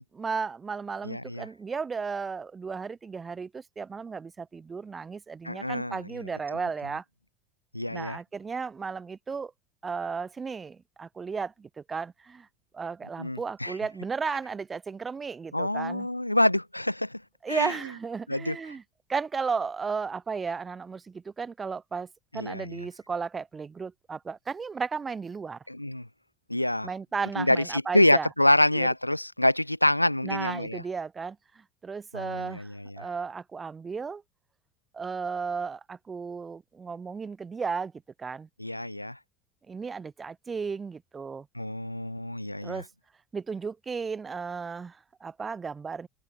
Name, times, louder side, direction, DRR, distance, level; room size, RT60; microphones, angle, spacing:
voice 1, 0.1-7.0 7.9-9.5 9.8-12.5 12.7-16.1 17.4-18.8 19.1-22.1 22.3-25.6 26.8-28.3 28.7-28.9 30.2-32.7 33.0-34.2 34.9-37.9 38.2-38.5 39.7-41.5 42.6-42.9 43.3-46.1, right 5 dB, 20° right, 0.6 m, -34 dB
voice 2, 1.0-1.5 5.4-6.0 7.7-8.2 13.2-13.7 15.5-17.2 17.5-17.7 18.3-18.6 22.3-22.8 25.7-26.1 26.5-26.9 27.4-30.8 32.1-33.0 38.6-39.2 41.6-42.8, left 1 dB, 90° left, 0.3 m, -26 dB
figure-of-eight pair, 70°, 0 cm